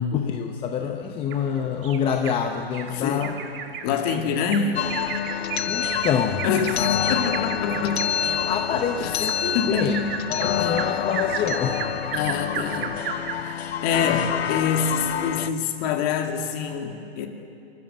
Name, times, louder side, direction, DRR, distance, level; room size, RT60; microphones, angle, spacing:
voice 1, 0.1-3.3 5.7-6.4 8.5-10.0 10.3-11.9, left 7 dB, 15° left, 5 dB, 0.8 m, -26 dB
Bird vocalization bird call bird song, 1.3-2.4 2.7-2.9 3.2-13.6 14.0-14.1 14.5-14.6, right 7 dB, 55° right, 1.9 m, -33 dB
voice 2, 2.9-3.3 3.8-4.9 6.4-8.1 8.4-10.1 10.6-10.9 12.1-13.0 13.4-17.3, left 6 dB, 40° left, 5 dB, 2.2 m, -26 dB
sound 1, 4.8-15.5, left 9 dB, 75° left, 0.9 m, -27 dB
28.5 x 14.0 x 7.6 m, 2.5 s
hypercardioid pair, 145°, 32 cm